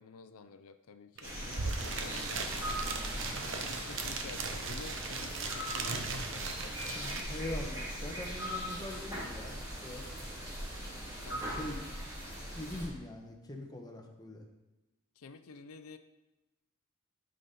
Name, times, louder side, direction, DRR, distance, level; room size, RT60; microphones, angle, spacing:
voice 1, 0.0-3.0 3.5-7.3 10.7-11.5 15.2-16.0, left 5 dB, 80° left, 9 dB, 0.5 m, -51 dB
sound 1, 1.2-12.9, equal, 15° right, 2.7 m, -40 dB
sound 2, 1.2-1.3 1.4-7.2, right 4 dB, 60° right, 0.9 m, -38 dB
voice 2, 6.9-9.5 9.8-10.0 11.2-11.8 12.5-14.5, left 1 dB, 20° left, 1 dB, 1.0 m, -43 dB
12.5 x 5.3 x 4.2 m, 1.0 s
head